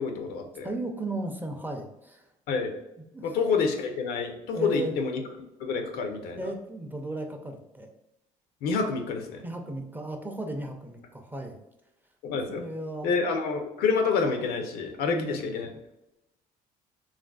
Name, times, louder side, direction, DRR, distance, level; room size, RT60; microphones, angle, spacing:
voice 1, 0.0-0.7 2.5-2.7 3.2-5.2 5.6-6.4 8.6-9.4 12.2-12.6 13.0-15.7, left 5 dB, 75° left, 5 dB, 0.5 m, -28 dB
voice 2, 0.6-2.3 3.1-3.3 4.5-4.9 6.4-7.9 9.4-11.6 12.5-13.1 15.0-15.6, right 2 dB, 10° right, 4 dB, 0.4 m, -35 dB
3.2 x 2.4 x 2.3 m, 0.89 s
supercardioid pair, 80°, 16 cm